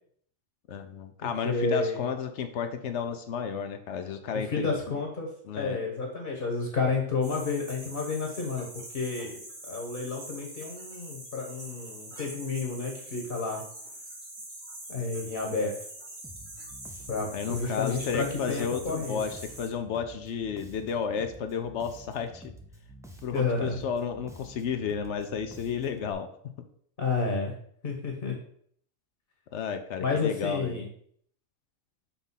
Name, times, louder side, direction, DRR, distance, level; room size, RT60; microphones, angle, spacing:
voice 1, 0.7-4.7 5.4-5.8 17.1-22.5 23.2-26.3 29.5-30.8, left 6 dB, 70° left, 7 dB, 0.9 m, -32 dB
voice 2, 1.4-2.0 4.5-5.3 5.6-8.6 8.9-13.6 14.9-15.7 17.1-19.2 23.3-23.8 27.0-27.5 27.8-28.3 30.0-30.9, left 4 dB, 45° left, 1 dB, 1.3 m, -30 dB
sound 1, 7.2-19.7, right 1 dB, 85° right, 2.1 m, -44 dB
Bass guitar, 16.2-26.1, equal, 5° right, 0.5 m, -49 dB
5.8 x 3.4 x 5.6 m, 0.63 s
omnidirectional pair, 1.3 m